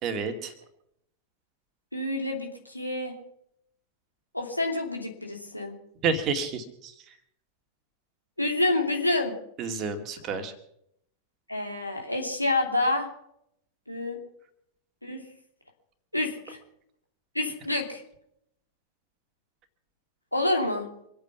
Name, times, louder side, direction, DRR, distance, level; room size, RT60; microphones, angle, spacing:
voice 1, 0.0-0.5 6.0-7.1 9.6-10.5, right 5 dB, 35° right, 6 dB, 2.3 m, -30 dB
voice 2, 1.9-3.1 4.3-5.8 8.4-9.3 11.5-13.1 13.9-14.2 15.0-15.2 16.1-16.6 17.3-18.0 20.3-20.9, left 2 dB, 90° left, 1 dB, 3.0 m, -28 dB
26.0 x 8.9 x 5.8 m, 0.73 s
figure-of-eight pair, 90°, 0 cm